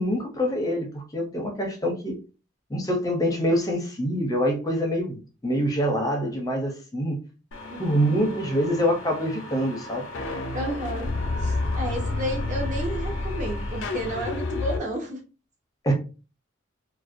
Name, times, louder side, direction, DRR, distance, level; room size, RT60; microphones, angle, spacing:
voice 1, 0.0-2.2 2.7-7.2 7.8-10.0 15.8-15.9, equal, 20° left, 0.5 m, -25 dB
sound 1, 7.5-14.8, left 2 dB, 80° left, 0.4 m, -30 dB
voice 2, 7.7-8.2 10.5-11.1 11.4-15.2, equal, 40° right, 0.7 m, -32 dB
2.4 x 2.1 x 2.5 m
head